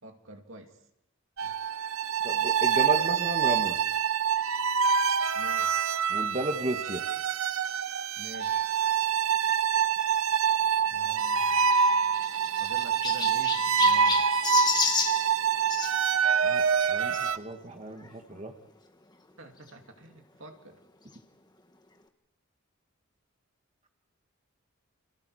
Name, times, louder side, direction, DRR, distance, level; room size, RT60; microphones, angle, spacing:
voice 1, 0.0-0.8 1.4-1.5 5.3-5.9 8.1-8.7 12.0-12.3 12.6-14.3 17.6-17.8 19.4-20.8, right 1 dB, 65° right, 4 dB, 2.5 m, -47 dB
sound 1, 1.4-17.4, right 6 dB, 80° right, 0.9 m, -26 dB
voice 2, 2.2-3.8 6.1-7.0 10.9-11.4 16.4-18.5, right 1 dB, 35° right, 3 dB, 1.7 m, -34 dB
Chirp tweet, 11.6-15.9 17.1-17.3 18.0-18.1 18.3-18.4 19.7-19.8, left 5 dB, 20° left, 1.5 m, -31 dB
29.5 x 27.5 x 4.9 m, 0.85 s
head